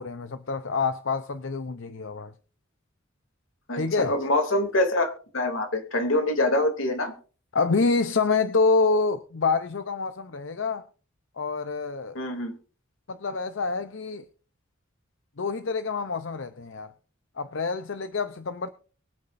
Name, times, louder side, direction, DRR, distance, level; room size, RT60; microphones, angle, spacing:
voice 1, 0.0-2.3 3.8-4.3 7.5-10.8 11.4-12.2 13.1-14.3 15.4-16.9 17.4-18.7, left 4 dB, 65° left, 0.7 m, -27 dB
voice 2, 3.7-7.1 12.1-12.5, left 1 dB, 85° left, 2.9 m, -25 dB
23.5 x 8.7 x 2.6 m
head